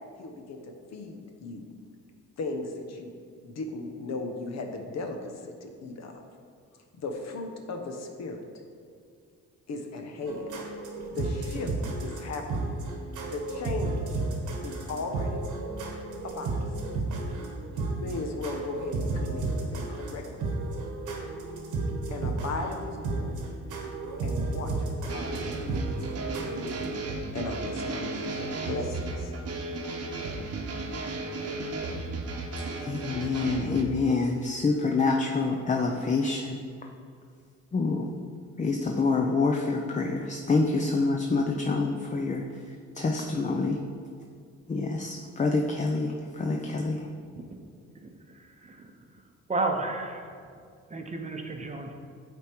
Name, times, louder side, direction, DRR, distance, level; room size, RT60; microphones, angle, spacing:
voice 1, 0.2-0.6 0.9-1.7 2.4-3.1 3.4-6.2 6.9-8.4 9.7-10.5 11.1-11.7 12.0-12.7 13.3-14.2 14.6-15.4 16.2-16.5 17.7-20.4 22.1-23.4 24.2-25.8 26.5-26.9 27.3-29.3, left 3 dB, 60° left, 4 dB, 0.9 m, -37 dB
sound 1, 10.3-26.9, right 2 dB, 80° right, 1.2 m, -33 dB
sound 2, 25.1-33.8, right 3 dB, 55° right, 0.9 m, -34 dB
voice 2, 32.8-36.6 37.7-38.1 38.6-42.4 43.0-43.8 44.7-47.0, left 3 dB, 25° left, 2 dB, 0.5 m, -27 dB
voice 3, 48.0-48.9 49.5-50.3 50.9-51.9, right 2 dB, 25° right, 3 dB, 0.8 m, -32 dB
9.1 x 3.5 x 4.5 m, 2.3 s
cardioid pair, 90°, 30 cm